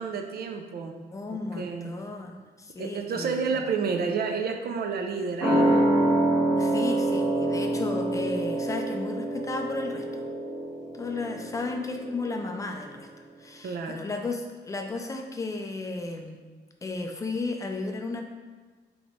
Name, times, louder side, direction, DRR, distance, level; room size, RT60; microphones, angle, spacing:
voice 1, 0.0-1.0 1.5-2.0 2.8-5.9 6.5-6.6 13.6-14.1, right 5 dB, 55° right, 5 dB, 0.5 m, -30 dB
voice 2, 1.1-3.5 6.6-10.2 10.9-13.1 13.4-16.4 16.8-18.2, left 3 dB, 15° left, 3 dB, 0.4 m, -34 dB
sound 1, 5.4-12.5 12.8-12.9, right 1 dB, ahead, 1.3 m, -26 dB
3.6 x 3.0 x 3.8 m, 1.4 s
wide cardioid pair, 145°, 19 cm